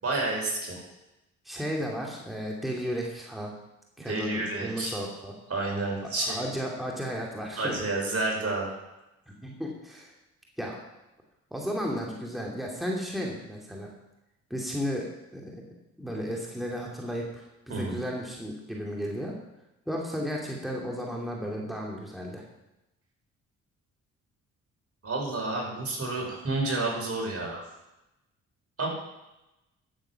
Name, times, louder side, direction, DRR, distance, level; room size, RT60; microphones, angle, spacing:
voice 1, 0.0-0.8 4.0-5.0 5.5-6.4 7.6-8.8 17.7-18.0 25.0-27.6 28.8-28.9, right 2 dB, 45° right, -1 dB, 5.2 m, -30 dB
voice 2, 1.4-3.5 4.0-5.3 6.0-7.8 9.4-10.1 10.6-10.8 11.5-13.9 14.5-15.6 16.0-19.3 19.9-22.4, equal, ahead, -2 dB, 2.8 m, -34 dB
13.0 x 7.7 x 5.9 m, 0.95 s
supercardioid pair, 55°, 33 cm